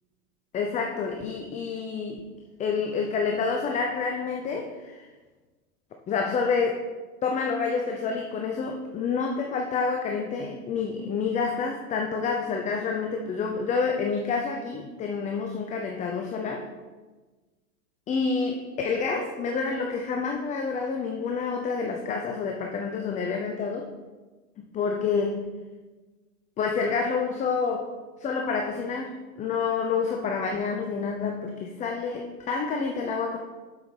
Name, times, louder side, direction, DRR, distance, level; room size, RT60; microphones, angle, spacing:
voice 1, 0.5-2.3 2.6-5.1 6.1-6.8 7.2-16.7 18.1-23.9 24.6-25.5 26.6-27.9 28.2-33.4, left 5 dB, 15° left, 2 dB, 0.4 m, -28 dB
8.2 x 6.9 x 3.2 m, 1.3 s
hypercardioid pair, 95°, 46 cm